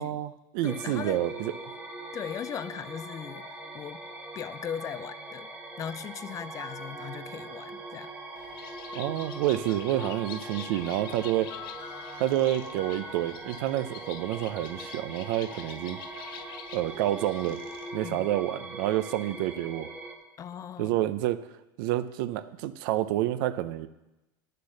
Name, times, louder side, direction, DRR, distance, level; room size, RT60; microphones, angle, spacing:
voice 1, 0.0-1.5 8.9-11.5 12.2-16.0 16.7-17.6 17.9-19.9 20.8-21.4 21.8-23.9, right 14 dB, 70° right, 13 dB, 0.6 m, -28 dB
voice 2, 0.6-1.2 2.1-4.0 4.3-5.5 5.8-8.1 18.0-18.3 20.4-21.0, left 9 dB, 30° left, 15 dB, 0.4 m, -38 dB
sound 1, 0.6-20.2, right 2 dB, 15° right, 1.4 m, -42 dB
sound 2, 6.3-8.2 9.2-13.4, left 6 dB, 50° left, 1.6 m, -49 dB
Bird, 8.4-18.1, left 12 dB, 85° left, 0.5 m, -47 dB
9.8 x 6.7 x 6.5 m, 1.0 s
supercardioid pair, 120°, 12 cm